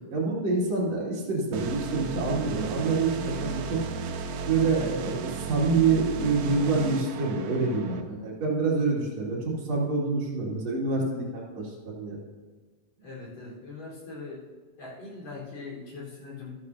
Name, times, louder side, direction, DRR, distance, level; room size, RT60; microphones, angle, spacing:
voice 1, 0.1-3.8 4.5-9.4 9.7-12.2, right 3 dB, 50° right, -5 dB, 3.4 m, -27 dB
sound 1, 1.5-8.0, right 5 dB, 80° right, 2.3 m, -35 dB
voice 2, 13.0-14.4 14.8-16.5, left 3 dB, 50° left, -5 dB, 5.4 m, -41 dB
13.5 x 12.5 x 2.8 m, 1.4 s
omnidirectional pair, 4.0 m